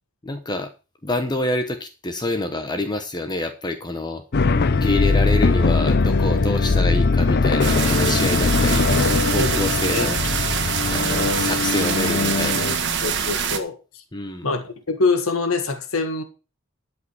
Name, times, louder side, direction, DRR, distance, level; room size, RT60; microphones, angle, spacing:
voice 1, 0.2-0.7 1.0-4.2 4.7-10.2 10.9-12.8 14.1-14.5, left 2 dB, 20° left, 0.9 m, -27 dB
sound 1, 4.3-12.8, left 3 dB, 50° left, 0.6 m, -20 dB
voice 2, 6.2-6.8 9.4-9.6 9.9-10.1 13.0-13.8 14.4-16.2, left 3 dB, 90° left, 1.7 m, -25 dB
sound 2, 7.6-13.6, right 7 dB, 60° right, 1.5 m, -25 dB
12.0 x 5.3 x 6.9 m
head